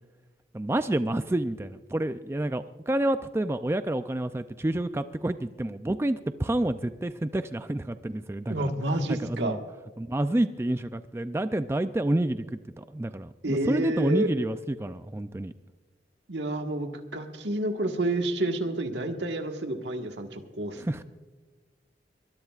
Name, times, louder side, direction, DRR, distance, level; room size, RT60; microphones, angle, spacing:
voice 1, 0.5-8.7 9.1-9.6 10.0-12.5 12.8-15.5 20.8-21.0, right 1 dB, 15° right, 10 dB, 0.3 m, -29 dB
voice 2, 8.5-9.6 13.4-14.3 16.3-20.9, right 1 dB, 85° right, 4 dB, 1.6 m, -29 dB
22.5 x 20.5 x 2.4 m, 1.3 s
head